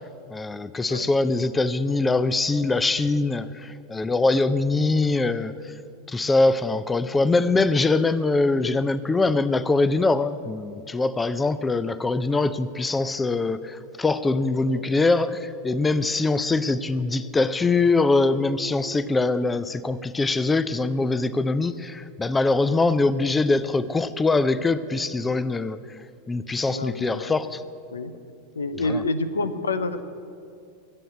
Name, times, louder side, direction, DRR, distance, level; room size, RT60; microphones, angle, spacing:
voice 1, 0.3-5.7 6.1-25.8 26.3-27.6 28.8-29.0, left 3 dB, 15° left, 15 dB, 0.5 m, -23 dB
voice 2, 14.4-14.9 26.7-27.3 27.9-28.1 28.6-30.0, left 2 dB, 80° left, 12 dB, 0.7 m, -28 dB
14.5 x 7.8 x 8.4 m, 2.4 s
figure-of-eight pair, 90°, 0 cm